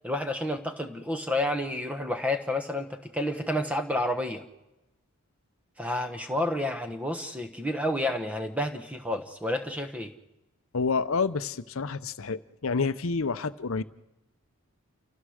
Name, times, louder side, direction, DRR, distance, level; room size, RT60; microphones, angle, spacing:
voice 1, 0.0-4.4 5.8-10.1, left 1 dB, 5° right, 7 dB, 1.1 m, -30 dB
voice 2, 10.7-13.8, left 4 dB, 65° left, 14 dB, 0.7 m, -28 dB
29.5 x 15.0 x 6.5 m, 0.99 s
head